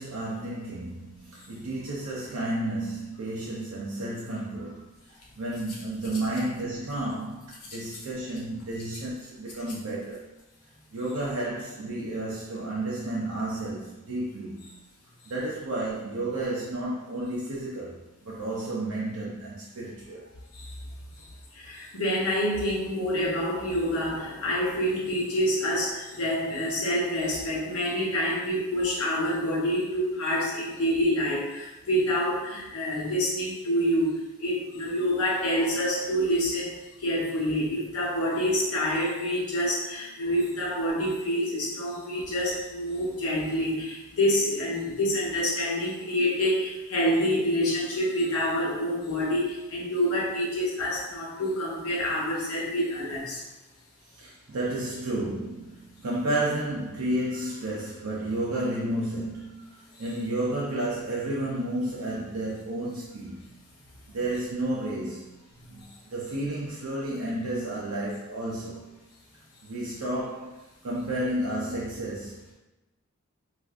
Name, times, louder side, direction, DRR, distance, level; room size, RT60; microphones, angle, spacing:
voice 1, 0.0-4.8 5.4-10.3 10.9-14.6 15.3-20.3 42.2-42.3 54.1-63.4 64.1-65.3 65.7-65.8 66.1-68.9 69.6-72.5, right 1 dB, 80° right, -5 dB, 0.5 m, -32 dB
voice 2, 21.5-53.4, equal, 80° left, -4 dB, 0.9 m, -27 dB
2.5 x 2.4 x 3.4 m, 0.99 s
head